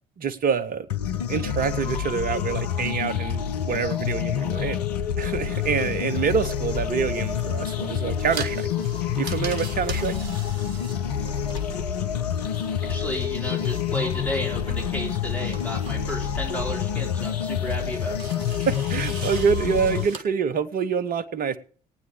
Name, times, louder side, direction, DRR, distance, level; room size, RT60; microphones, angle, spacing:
voice 1, 0.2-0.9 1.3-4.8 5.2-8.7 9.2-10.2 18.6-21.6, right 6 dB, 45° right, 12 dB, 1.2 m, -26 dB
sound 1, 0.9-20.1, left 8 dB, 75° left, 0.8 m, -27 dB
sound 2, 5.5-19.6, left 2 dB, 25° left, 5.8 m, -53 dB
sound 3, 6.4-20.2, right 5 dB, 65° right, 1.7 m, -43 dB
voice 2, 12.9-18.2, left 1 dB, 5° left, -2 dB, 3.9 m, -32 dB
19.0 x 9.6 x 4.8 m, 0.43 s
figure-of-eight pair, 50°, 20 cm